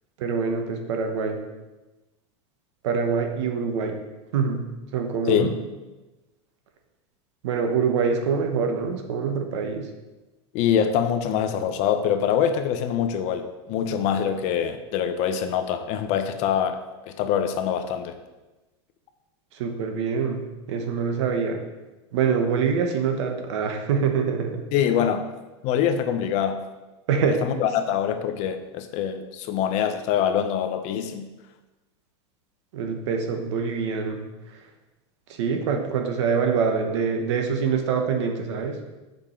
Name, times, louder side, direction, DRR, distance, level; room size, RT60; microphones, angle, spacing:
voice 1, 0.2-1.4 2.8-4.0 4.3-4.6 4.9-5.6 7.4-9.9 19.5-20.4 20.7-21.6 22.1-24.6 27.1-27.4 32.7-34.2 35.3-38.8, right 6 dB, 75° right, 4 dB, 1.2 m, -25 dB
voice 2, 10.5-18.2 24.7-25.3 25.6-26.6 27.4-31.3, left 8 dB, 50° left, 8 dB, 0.8 m, -24 dB
7.1 x 5.3 x 4.4 m, 1.1 s
supercardioid pair, 125°, 15 cm